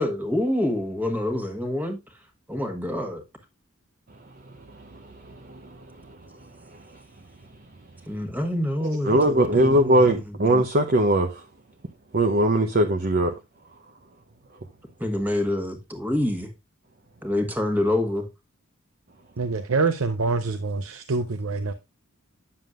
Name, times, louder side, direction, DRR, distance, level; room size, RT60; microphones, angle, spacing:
voice 1, 0.0-2.2 2.5-3.2 8.1-10.2 15.0-16.5 17.2-18.3, left 1 dB, 10° right, 1.4 m, -27 dB
voice 2, 4.7-6.2 9.0-11.4 12.1-13.3, right 1 dB, 45° right, 0.8 m, -21 dB
voice 3, 19.4-21.7, right 4 dB, 85° right, 0.7 m, -25 dB
9.5 x 7.1 x 2.5 m
head